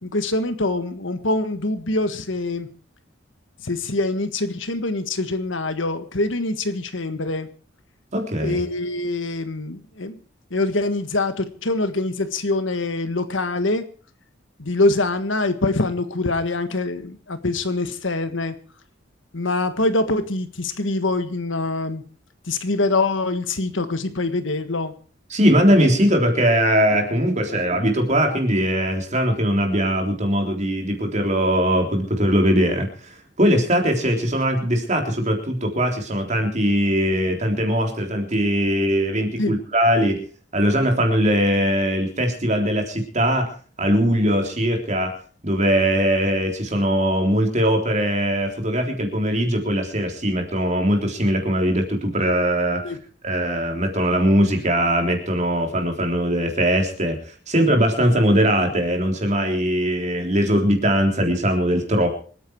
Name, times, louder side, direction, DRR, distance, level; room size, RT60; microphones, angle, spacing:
voice 1, 0.0-2.7 3.6-7.5 8.4-10.2 10.5-13.8 14.6-18.6 19.3-22.0 22.5-24.9 39.4-39.6 52.8-53.0, left 2 dB, 75° left, 10 dB, 1.6 m, -24 dB
voice 2, 8.1-8.6 25.3-40.3 40.5-43.5 43.8-45.2 45.4-53.0 53.2-62.2, equal, 40° right, 4 dB, 3.6 m, -20 dB
26.5 x 9.4 x 4.7 m, 0.41 s
head